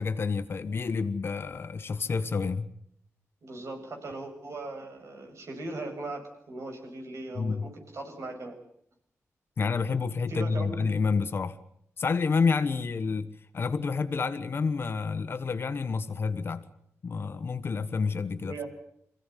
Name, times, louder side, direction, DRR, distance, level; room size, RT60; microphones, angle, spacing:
voice 1, 0.0-2.7 7.3-7.6 9.6-11.6 12.0-13.3 13.5-16.6 17.0-18.5, left 5 dB, 45° left, 1.4 m, -29 dB
voice 2, 3.4-8.6 10.3-11.0 18.4-18.6, right 2 dB, 65° right, 6.9 m, -39 dB
27.0 x 16.5 x 9.3 m
wide cardioid pair, 175°, 5 cm